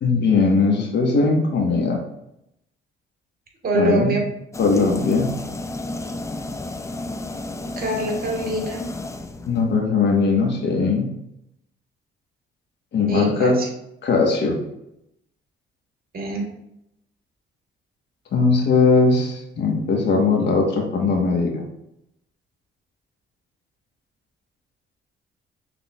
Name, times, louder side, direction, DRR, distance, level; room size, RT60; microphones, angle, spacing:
voice 1, 0.0-2.0 3.7-4.1 4.6-5.3 9.5-11.1 12.9-13.6 14.0-14.6 18.3-21.6, left 4 dB, 60° left, 0 dB, 1.2 m, -19 dB
voice 2, 3.6-4.2 7.8-8.9 13.1-13.7 16.1-16.5, right 1 dB, 50° right, 1 dB, 1.4 m, -24 dB
sound 1, 4.5-9.8, left 2 dB, 15° left, 0.4 m, -32 dB
6.0 x 3.5 x 2.3 m, 0.81 s
cardioid pair, 90°, 20 cm